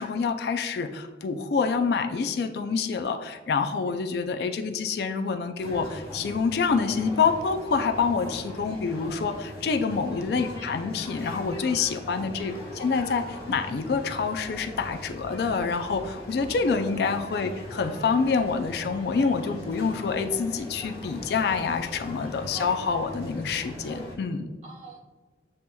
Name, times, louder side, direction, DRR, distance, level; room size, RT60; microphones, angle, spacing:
voice 1, 0.0-24.5, left 5 dB, 60° left, 7 dB, 0.3 m, -27 dB
sound 1, 5.6-24.2, equal, 15° left, 1.2 m, -40 dB
voice 2, 24.6-25.0, right 3 dB, 35° right, -5 dB, 1.2 m, -46 dB
7.6 x 2.8 x 2.2 m, 1.4 s
head